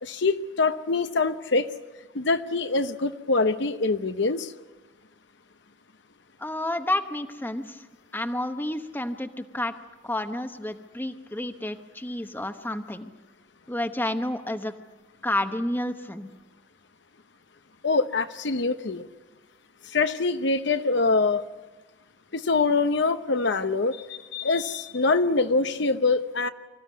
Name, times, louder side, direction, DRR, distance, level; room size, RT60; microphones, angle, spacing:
voice 1, 0.0-1.7 2.1-4.5 17.8-19.1 19.9-21.4 22.3-26.5, left 3 dB, 70° left, 10 dB, 0.9 m, -24 dB
voice 2, 6.4-7.8 8.1-9.7 10.0-13.1 13.7-14.7 15.2-16.3, left 1 dB, 10° left, 8 dB, 1.0 m, -30 dB
25.5 x 15.0 x 9.5 m, 1.2 s
head